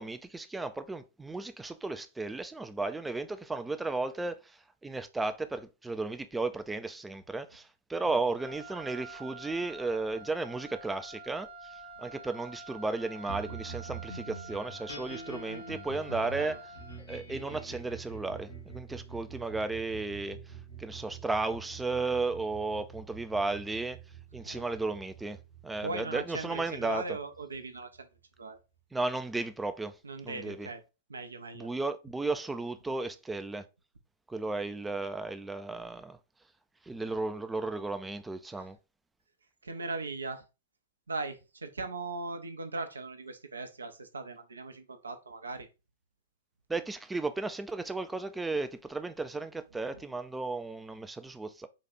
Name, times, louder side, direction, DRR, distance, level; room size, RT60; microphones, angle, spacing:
voice 1, 0.0-4.4 4.8-11.5 12.0-16.6 17.1-20.4 20.8-24.0 24.3-25.4 25.6-27.0 28.9-30.0 30.2-30.7 31.6-33.6 34.3-36.2 36.9-38.8 46.7-51.7, right 3 dB, 5° right, 0.4 m, -34 dB
Wind instrument woodwind instrument, 8.4-17.1, right 3 dB, 30° left, 0.6 m, -48 dB
sound 1, 13.3-28.0, right 4 dB, 75° left, 1.7 m, -46 dB
voice 2, 16.2-16.6 24.4-24.7 25.8-28.1 28.4-28.6 30.0-30.8 31.1-31.7 38.5-38.7 39.6-40.4 41.1-45.7, right 3 dB, 70° right, 0.7 m, -39 dB
4.1 x 2.4 x 4.1 m
figure-of-eight pair, 105°, 0 cm